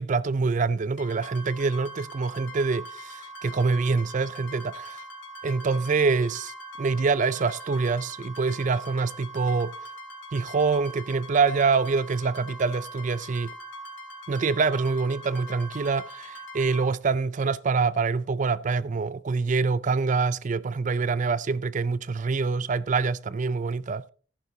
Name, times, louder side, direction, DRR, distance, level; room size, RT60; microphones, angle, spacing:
voice 1, 0.0-5.0 5.4-9.7 10.3-13.5 14.3-24.0, right 4 dB, 40° right, 0.4 m, -25 dB
sound 1, 1.0-16.8, right 1 dB, 70° left, 3.1 m, -42 dB
13.5 x 11.0 x 2.7 m
head